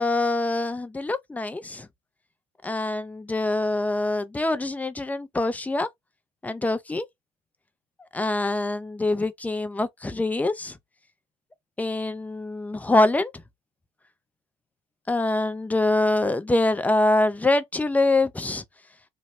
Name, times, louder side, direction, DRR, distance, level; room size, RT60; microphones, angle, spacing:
voice 1, 0.0-1.9 2.6-5.9 6.4-7.1 8.1-10.8 11.8-13.3 15.1-18.6, left 2 dB, 10° left, 0.5 m, -24 dB
2.9 x 2.0 x 2.9 m
hypercardioid pair, 70°, 17 cm